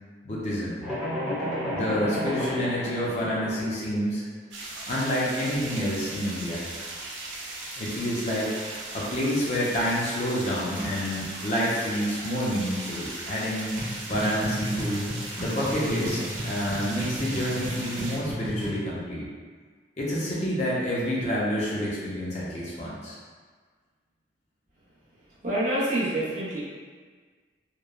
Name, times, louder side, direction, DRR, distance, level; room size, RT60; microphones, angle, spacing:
voice 1, 0.2-0.8 1.7-4.2 4.9-6.6 7.8-8.5 8.9-13.8 14.1-15.1 15.4-19.3 20.0-23.2, equal, 40° left, -6 dB, 0.5 m, -28 dB
sound 1, 0.8-3.7, left 1 dB, ahead, 0.7 m, -31 dB
sound 2, 4.5-18.2, right 2 dB, 90° right, 0.5 m, -38 dB
sound 3, 13.8-18.9, equal, 25° right, 0.9 m, -34 dB
voice 2, 25.1-26.6, right 1 dB, 45° right, -8 dB, 0.7 m, -27 dB
3.0 x 2.1 x 2.3 m, 1.5 s
head